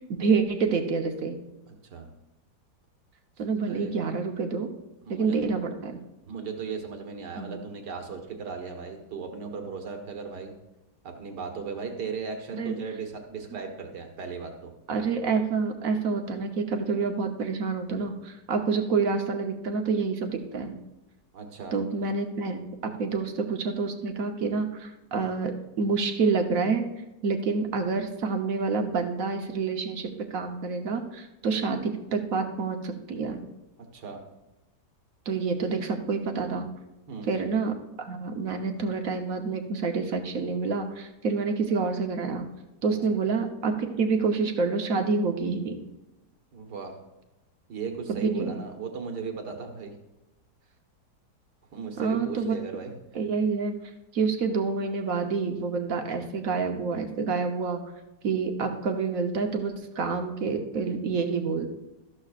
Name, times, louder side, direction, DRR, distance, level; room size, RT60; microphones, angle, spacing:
voice 1, 0.1-1.4 3.4-4.7 5.1-6.0 7.4-7.6 12.5-12.7 14.9-20.7 21.7-26.8 27.2-33.4 35.3-36.7 37.3-42.5 42.8-45.8 48.1-48.6 52.0-52.5 53.1-53.7 54.1-57.8 58.2-61.7, right 4 dB, 55° right, 5 dB, 1.3 m, -28 dB
voice 2, 1.7-2.1 3.7-3.9 5.0-5.4 6.3-10.5 11.0-14.7 21.3-21.8 33.9-34.2 37.1-37.3 42.9-43.0 46.5-47.0 47.7-49.9 51.7-52.9, right 5 dB, 75° right, 3 dB, 2.1 m, -36 dB
13.5 x 12.0 x 2.5 m, 1.0 s
omnidirectional pair, 1.8 m